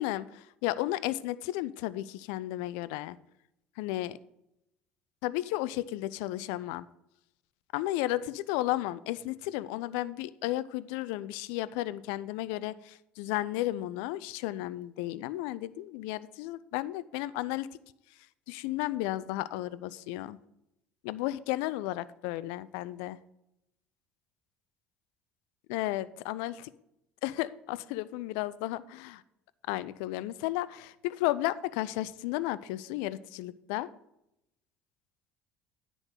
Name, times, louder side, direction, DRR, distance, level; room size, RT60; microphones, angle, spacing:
voice 1, 0.0-3.2 3.8-4.2 5.2-6.9 7.7-17.7 18.5-20.4 21.0-23.2 25.7-26.7 27.2-29.2 29.7-33.9, left 16 dB, 70° left, 17 dB, 0.4 m, -33 dB
9.8 x 3.8 x 6.5 m, 0.84 s
hypercardioid pair, 65°, 5 cm